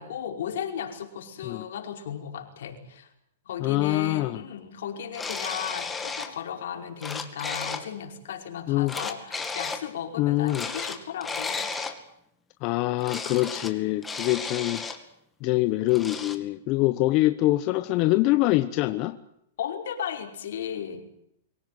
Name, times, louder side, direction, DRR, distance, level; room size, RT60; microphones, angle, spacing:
voice 1, 0.0-3.1 3.5-11.7 19.6-21.1, left 8 dB, 70° left, 5.3 m, -35 dB
voice 2, 3.6-4.4 8.7-8.9 10.2-10.7 12.6-14.8 15.4-19.2, left 17 dB, 35° left, 0.9 m, -24 dB
sound 1, 5.1-6.3 6.8-7.9 8.9-9.8 10.5-12.0 13.0-13.7 14.0-15.0 15.9-16.4, left 4 dB, 10° left, 2.3 m, -33 dB
24.5 x 17.5 x 9.4 m
hypercardioid pair, 150°, 0 cm